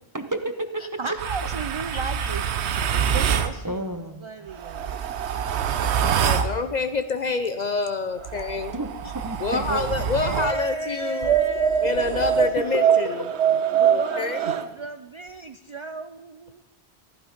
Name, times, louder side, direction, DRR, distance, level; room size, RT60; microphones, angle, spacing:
voice 1, 0.1-1.0 3.6-4.3 8.7-9.4 9.9-10.0, right 1 dB, 20° right, 8 dB, 0.7 m, -32 dB
voice 2, 0.8-5.0 5.8-6.2 9.5-13.2 13.8-16.6, right 4 dB, 45° right, 9 dB, 0.4 m, -34 dB
sound 1, 1.2-3.5 4.5-6.5 8.2-10.5 11.2-14.7, right 8 dB, 80° right, 1.0 m, -24 dB
voice 3, 6.2-8.8 9.4-11.3 11.8-13.2 13.9-14.4, left 4 dB, 50° left, 10 dB, 0.6 m, -27 dB
14.5 x 11.5 x 5.1 m, 0.95 s
omnidirectional pair, 1.1 m